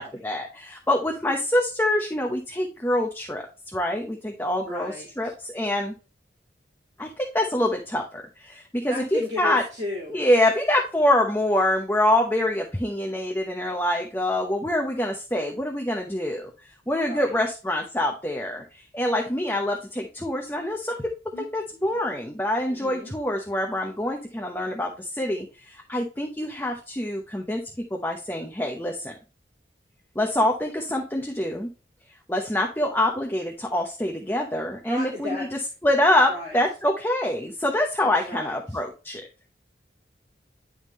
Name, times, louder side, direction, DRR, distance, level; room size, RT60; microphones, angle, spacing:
voice 1, 0.0-3.5 3.7-5.9 7.0-9.6 10.1-16.5 16.9-21.1 21.5-27.6 27.9-29.1 30.2-31.7 32.3-35.5 35.8-39.2, left 1 dB, 15° left, 1 dB, 0.9 m, -25 dB
voice 2, 4.7-5.3 8.9-10.2 17.1-17.3 21.3-21.5 22.7-23.1 34.9-35.7 36.3-36.6 38.0-38.8, left 1 dB, 40° right, -4 dB, 2.7 m, -35 dB
11.0 x 3.7 x 3.1 m, 0.33 s
head